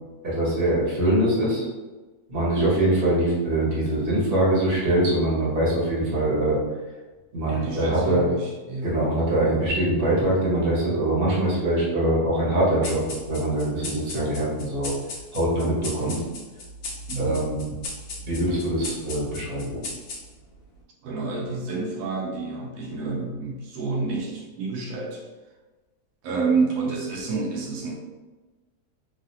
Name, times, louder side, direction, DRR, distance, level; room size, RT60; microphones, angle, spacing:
voice 1, 0.2-1.7 2.3-6.6 7.3-8.3 8.8-13.0 13.3-14.9 15.3-16.1 17.2-17.6 18.3-19.7, right 1 dB, 40° right, -6 dB, 1.1 m, -23 dB
voice 2, 7.5-9.0 9.4-9.6 16.0-16.2 17.1-17.4 21.0-25.3 26.2-27.9, right 4 dB, 85° right, 0 dB, 1.1 m, -29 dB
sound 1, 12.8-20.6, left 2 dB, 75° left, 1.1 m, -37 dB
3.1 x 2.5 x 2.7 m, 1.2 s
omnidirectional pair, 1.6 m